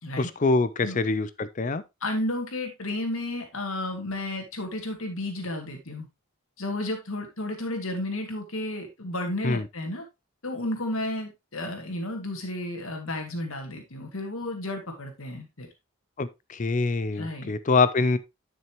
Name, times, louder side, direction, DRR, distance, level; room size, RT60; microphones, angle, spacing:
voice 1, 0.2-1.8 9.4-9.6 16.2-18.2, left 3 dB, 35° left, 0.5 m, -25 dB
voice 2, 2.0-6.1 6.6-10.0 10.4-15.7 17.1-17.5, left 1 dB, 75° left, 2.2 m, -32 dB
10.5 x 6.1 x 2.9 m
head